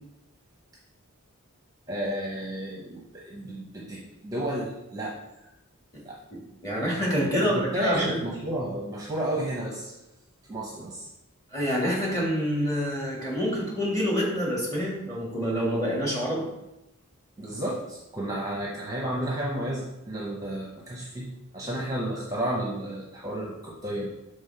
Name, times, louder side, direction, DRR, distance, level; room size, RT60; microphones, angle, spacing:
voice 1, 1.9-5.1 6.0-6.2 7.3-10.0 10.5-11.1 17.4-21.3 21.5-24.1, right 1 dB, 15° right, -4 dB, 0.8 m, -32 dB
voice 2, 6.3-8.2 11.5-16.5, equal, 15° left, -4 dB, 1.6 m, -27 dB
5.4 x 3.4 x 5.6 m, 0.94 s
head